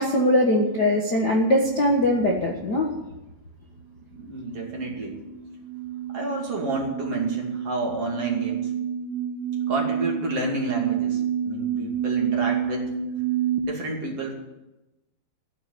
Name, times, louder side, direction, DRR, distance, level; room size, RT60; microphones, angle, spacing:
voice 1, 0.0-2.9, left 1 dB, 85° left, -1 dB, 0.9 m, -21 dB
sound 1, 4.1-13.6, right 9 dB, 90° right, 3.2 m, -29 dB
voice 2, 4.2-5.2 6.1-8.7 9.7-12.9 13.6-14.3, right 2 dB, 40° right, -1 dB, 3.1 m, -30 dB
14.5 x 6.8 x 9.9 m, 0.99 s
omnidirectional pair, 4.5 m